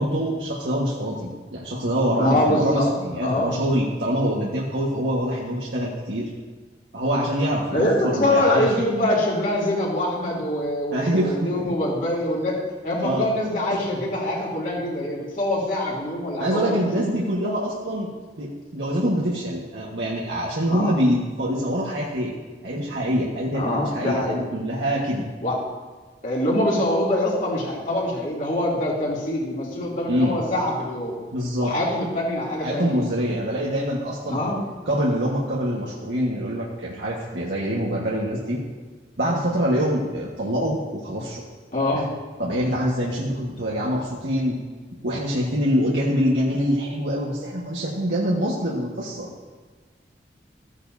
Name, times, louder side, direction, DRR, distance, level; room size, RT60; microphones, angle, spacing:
voice 1, 0.0-6.3 6.9-8.7 10.9-11.7 13.0-13.3 13.7-13.8 16.4-18.1 18.4-22.3 22.6-25.3 30.1-30.4 31.3-31.7 32.6-34.4 34.9-38.6 39.2-41.4 41.9-42.0 42.4-44.6 45.0-49.3, equal, 90° right, -5 dB, 1.5 m, -25 dB
voice 2, 2.2-2.9 3.2-3.5 7.7-12.6 12.8-16.8 20.7-21.0 23.5-24.4 25.4-25.5 26.2-31.1 31.6-33.0 34.3-34.6 41.7-42.1, left 1 dB, 45° left, -5 dB, 2.9 m, -24 dB
15.0 x 9.7 x 2.7 m, 1.4 s
head